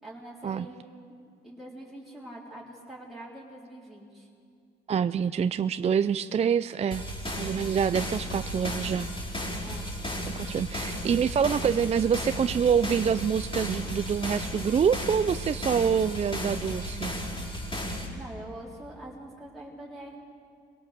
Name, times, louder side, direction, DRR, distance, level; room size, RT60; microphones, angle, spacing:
voice 1, 0.0-1.1 1.4-4.3 9.6-9.9 18.1-20.2, right 1 dB, ahead, -6 dB, 3.9 m, -44 dB
voice 2, 4.9-7.0 7.4-9.1 10.4-17.1, right 7 dB, 35° right, 13 dB, 0.4 m, -26 dB
sound 1, 6.9-18.1, equal, 25° left, 4.9 m, -34 dB
23.0 x 17.5 x 6.7 m, 2.4 s
cardioid pair, 90°, 20 cm